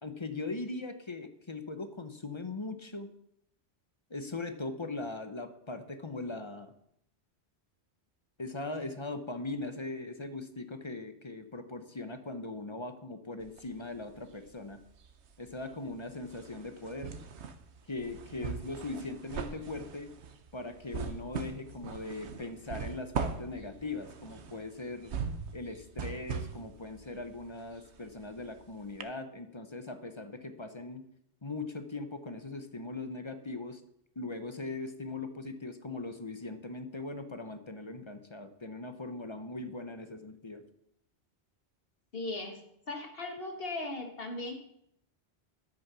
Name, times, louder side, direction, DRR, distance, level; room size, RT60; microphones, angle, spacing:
voice 1, 0.0-3.1 4.1-6.7 8.4-14.8 15.4-17.1 17.9-20.1 20.5-25.2 25.5-31.0 31.4-33.8 34.2-40.6, left 3 dB, 30° left, 9 dB, 0.8 m, -40 dB
sound 1, 13.4-14.5 14.8-28.6 29.0-29.1, right 6 dB, 80° right, 1.2 m, -40 dB
voice 2, 42.1-42.6 42.9-44.5, left 2 dB, 60° left, 4 dB, 2.0 m, -37 dB
11.0 x 8.4 x 6.1 m, 0.75 s
omnidirectional pair, 1.1 m